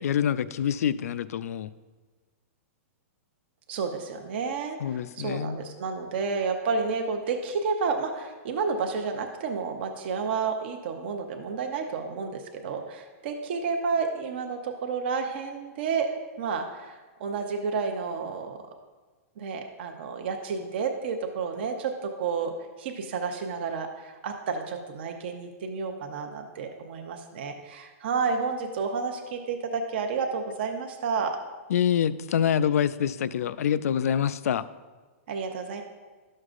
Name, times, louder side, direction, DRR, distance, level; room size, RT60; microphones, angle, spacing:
voice 1, 0.0-1.7 4.8-5.6 31.7-34.7, left 9 dB, 85° left, 15 dB, 0.4 m, -26 dB
voice 2, 3.7-18.6 19.4-31.4 35.3-35.8, right 5 dB, 45° right, 4 dB, 0.6 m, -31 dB
12.0 x 6.4 x 2.5 m, 1.3 s
supercardioid pair, 175°, 8 cm